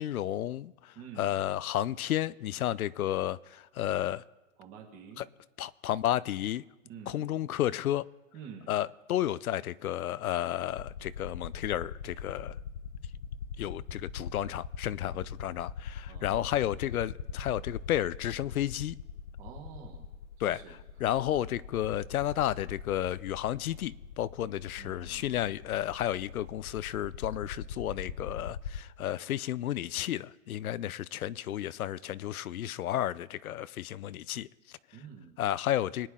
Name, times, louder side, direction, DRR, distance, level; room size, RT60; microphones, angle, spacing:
voice 1, 0.0-4.2 5.2-5.3 5.6-6.6 7.1-8.1 8.7-12.6 13.6-19.0 20.4-34.8 35.4-36.1, left 12 dB, 85° left, 0.6 m, -32 dB
voice 2, 0.9-1.3 4.6-5.2 6.9-7.4 8.3-8.7 16.1-16.5 19.4-20.0 20.4-20.7 24.8-25.4 34.9-35.4, right 7 dB, 20° right, 1.4 m, -48 dB
sound 1, 10.7-28.8, left 7 dB, 55° left, 0.9 m, -41 dB
25.5 x 9.4 x 3.7 m
hypercardioid pair, 170°, 42 cm